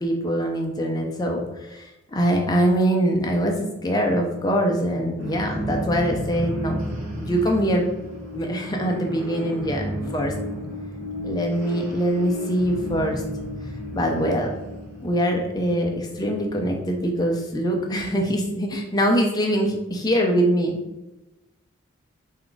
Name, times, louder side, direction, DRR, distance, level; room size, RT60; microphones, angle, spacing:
voice 1, 0.0-1.4 1.7-1.9 2.1-7.9 8.3-10.3 11.2-13.2 13.9-14.5 15.0-20.8, equal, 20° left, 1 dB, 0.5 m, -23 dB
sound 1, 5.2-17.7, equal, 80° right, 1.2 m, -33 dB
3.5 x 2.3 x 3.8 m, 1.0 s
head